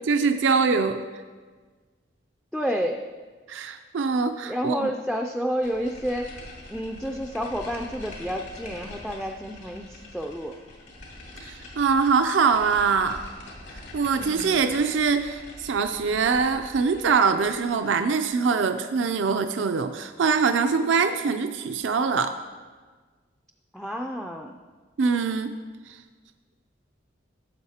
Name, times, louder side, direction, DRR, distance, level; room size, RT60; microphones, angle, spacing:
voice 1, 0.1-1.0 3.5-4.9 11.4-13.2 13.9-22.3 25.0-25.5 25.9-26.0, right 5 dB, 75° right, 7 dB, 0.4 m, -23 dB
voice 2, 2.5-3.0 4.4-6.3 6.7-10.6 14.2-14.6 23.7-24.6, equal, ahead, 3 dB, 0.3 m, -30 dB
sound 1, 5.6-18.0, left 1 dB, 75° left, 2.8 m, -44 dB
15.0 x 7.2 x 2.8 m, 1.4 s
head